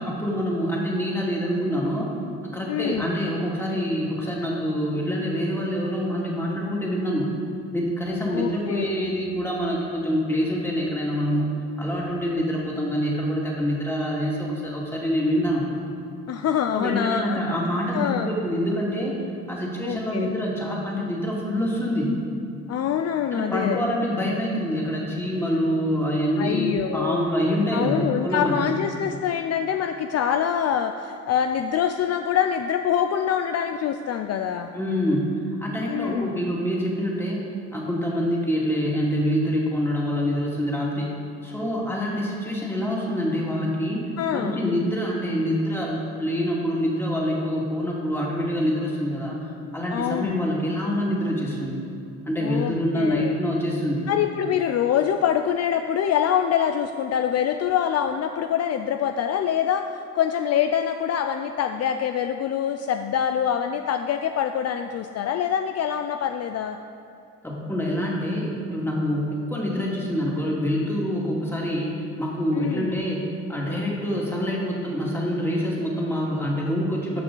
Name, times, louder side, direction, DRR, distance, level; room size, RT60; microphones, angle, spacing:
voice 1, 0.0-2.1 2.4-7.3 7.7-15.6 16.7-19.2 19.5-22.1 23.3-28.7 34.7-37.4 37.7-41.1 41.4-44.0 44.3-49.4 49.7-51.8 52.3-54.1 67.4-77.2, equal, 10° left, -4 dB, 2.2 m, -26 dB
voice 2, 2.7-3.1 8.3-8.9 16.3-17.4 17.9-18.3 19.8-20.3 22.7-23.8 26.4-27.3 27.7-34.7 35.9-36.5 44.2-44.6 49.9-50.3 52.4-53.3 54.1-66.8 72.5-73.1, left 9 dB, 55° left, 7 dB, 0.4 m, -25 dB
14.5 x 5.5 x 3.9 m, 2.5 s
cardioid pair, 90°, 30 cm